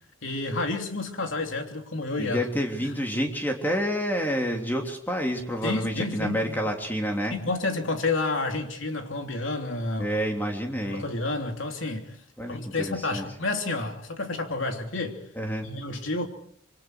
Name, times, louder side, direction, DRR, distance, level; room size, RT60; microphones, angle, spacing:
voice 1, 0.2-2.4 2.8-2.9 5.6-6.6 7.3-10.1 10.8-12.2 12.5-15.2 15.6-16.3, left 2 dB, 80° left, 3.0 m, -30 dB
voice 2, 2.2-7.4 10.0-11.0 12.4-13.3 15.3-15.7, equal, 10° left, 3.2 m, -28 dB
26.0 x 24.5 x 4.7 m
head